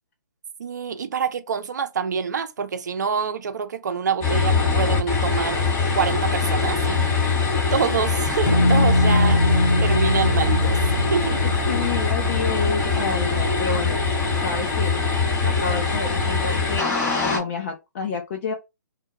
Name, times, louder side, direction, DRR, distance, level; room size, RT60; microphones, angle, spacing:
voice 1, 0.6-5.7 5.9-7.4 7.7-11.4, right 6 dB, 60° right, 0.5 m, -26 dB
sound 1, 4.2-17.4, left 4 dB, 25° left, 0.9 m, -23 dB
sound 2, 8.5-13.4, left 1 dB, 60° left, 0.8 m, -22 dB
voice 2, 11.4-14.0 14.4-15.0 15.4-16.9 17.2-18.5, left 5 dB, 40° left, 0.5 m, -29 dB
2.2 x 2.1 x 2.9 m
figure-of-eight pair, 135°, 11 cm